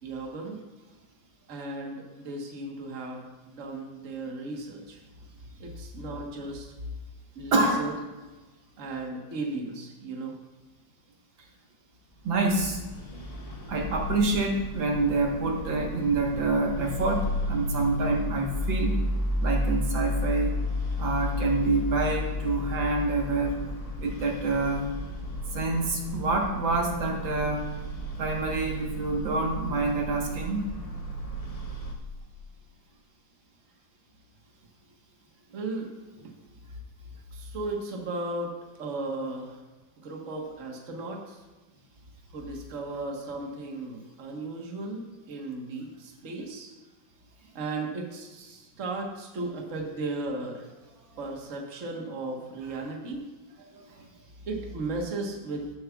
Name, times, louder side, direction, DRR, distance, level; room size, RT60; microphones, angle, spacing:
voice 1, 0.0-0.6 1.5-5.0 5.6-6.7 7.3-7.9 8.8-10.4 35.5-35.9 36.2-36.3 37.3-38.5 38.8-39.6 40.0-41.4 42.3-46.7 47.5-50.7 51.2-53.2 54.5-55.7, right 2 dB, 45° right, 1 dB, 1.5 m, -35 dB
voice 2, 7.5-7.8 12.2-12.8 13.7-19.0 19.4-20.6 21.0-23.5 24.0-24.9 25.5-27.7 28.2-30.6, right 3 dB, 75° right, 0 dB, 2.1 m, -27 dB
sound 1, 12.3-31.9, left 1 dB, 25° left, 0.8 m, -33 dB
16.5 x 7.6 x 2.4 m, 1.2 s
omnidirectional pair, 2.1 m